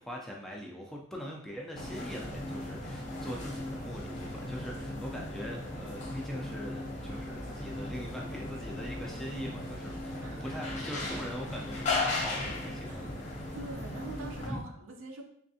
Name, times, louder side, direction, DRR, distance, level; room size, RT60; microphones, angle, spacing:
voice 1, 0.0-13.1 14.5-14.6, equal, ahead, -1 dB, 0.4 m, -42 dB
sound 1, 1.7-14.5, left 2 dB, 35° left, 0.7 m, -37 dB
voice 2, 4.9-5.3 10.2-10.5 12.9-13.2 13.5-15.2, right 2 dB, 65° right, 3 dB, 0.6 m, -45 dB
3.4 x 3.2 x 2.7 m, 0.67 s
head